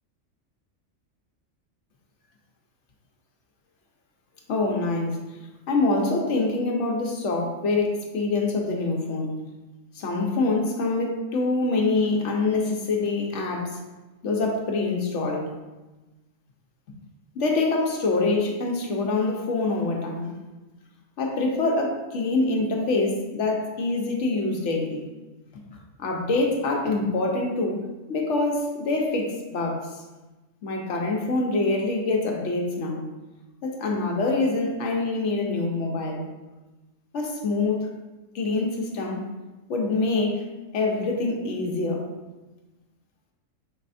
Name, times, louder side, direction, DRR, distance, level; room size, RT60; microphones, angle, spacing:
voice 1, 4.5-5.2 5.7-9.4 9.9-13.8 14.2-15.5 17.3-20.3 21.2-25.1 26.0-29.9 30.6-33.1 33.6-36.2 37.1-37.9 38.3-39.2 39.7-40.4 40.7-42.0, left 3 dB, 65° left, 0 dB, 1.0 m, -25 dB
5.5 x 3.2 x 2.6 m, 1.1 s
omnidirectional pair, 1.4 m